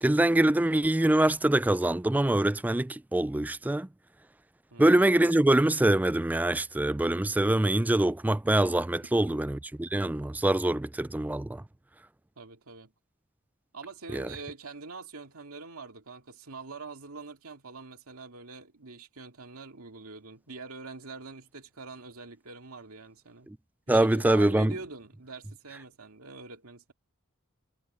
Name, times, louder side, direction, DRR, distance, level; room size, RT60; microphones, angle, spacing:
voice 1, 0.0-3.9 4.8-11.6 14.1-14.3 23.5-23.6 23.9-24.7, right 1 dB, 10° right, 0.3 m, -24 dB
voice 2, 4.7-5.1 9.0-9.4 12.4-12.9 13.7-23.5 23.9-26.9, right 4 dB, 75° right, 2.4 m, -44 dB
head